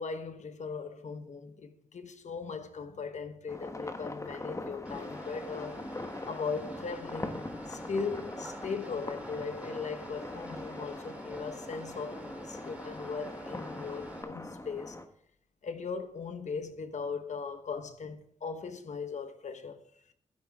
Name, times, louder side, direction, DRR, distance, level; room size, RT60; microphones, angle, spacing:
voice 1, 0.0-5.8 6.3-15.0 15.6-19.8, left 5 dB, 60° left, 1.2 m, -38 dB
sound 1, 3.5-15.1, left 2 dB, 25° left, 1.2 m, -42 dB
sound 2, 4.8-14.2, right 1 dB, 10° right, 3.3 m, -47 dB
12.0 x 10.5 x 3.6 m
cardioid pair, 50°, 13 cm